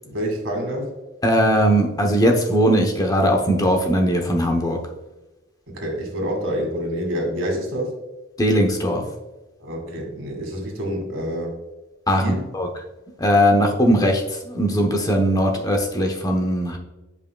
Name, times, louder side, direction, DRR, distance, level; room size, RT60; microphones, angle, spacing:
voice 1, 0.0-0.9 5.7-7.9 9.6-11.6 12.2-12.4, equal, 65° right, 1 dB, 1.9 m, -27 dB
voice 2, 1.2-4.8 8.4-9.0 12.1-12.7 13.2-16.8, equal, 20° left, 2 dB, 0.8 m, -19 dB
9.5 x 5.3 x 2.3 m, 1.1 s
head